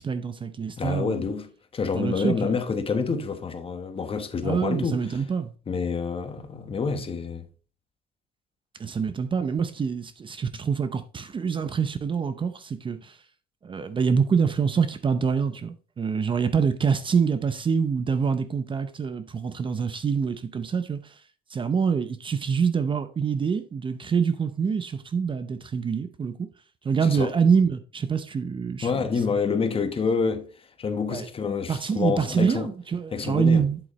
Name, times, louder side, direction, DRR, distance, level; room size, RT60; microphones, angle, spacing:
voice 1, 0.0-1.2 1.9-2.6 4.4-5.5 8.8-13.2 13.6-21.2 21.5-26.4 26.8-29.1 31.1-31.3 31.7-33.8, right 6 dB, 30° right, 0.7 m, -25 dB
voice 2, 0.8-5.2 5.7-7.5 27.1-27.3 28.8-32.7 33.1-33.6, left 5 dB, 35° left, 1.2 m, -28 dB
7.9 x 7.7 x 3.2 m
cardioid pair, 110°, 17 cm